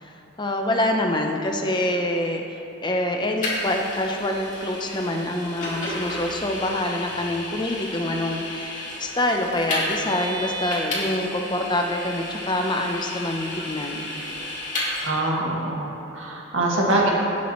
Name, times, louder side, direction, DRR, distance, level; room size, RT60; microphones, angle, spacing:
voice 1, 0.0-14.1, left 1 dB, 25° left, 2 dB, 0.7 m, -26 dB
Vehicle, 3.4-15.1, left 1 dB, 40° left, 2.5 m, -32 dB
voice 2, 15.0-17.1, right 2 dB, 85° right, -3 dB, 1.9 m, -24 dB
17.5 x 7.3 x 3.1 m, 3.0 s
head